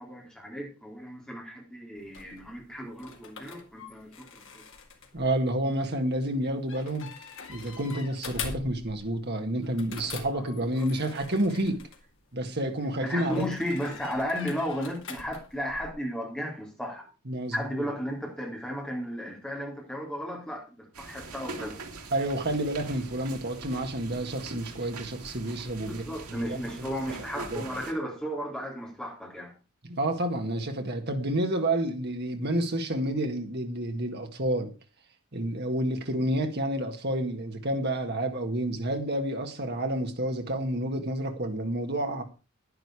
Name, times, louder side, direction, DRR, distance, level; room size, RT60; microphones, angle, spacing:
voice 1, 0.0-4.6 10.3-10.9 13.0-17.0 17.5-21.8 25.9-29.5, equal, 5° left, 3.7 m, -35 dB
sound 1, 2.0-12.5 13.1-15.9, left 4 dB, 60° left, 2.3 m, -42 dB
voice 2, 5.1-7.1 7.5-11.8 12.3-13.4 17.3-17.9 22.1-26.0 26.3-27.7 29.8-34.7 35.3-42.2, right 1 dB, 45° right, 1.9 m, -29 dB
sound 2, 20.9-27.9, right 3 dB, 90° right, 2.3 m, -43 dB
10.5 x 10.5 x 4.9 m
head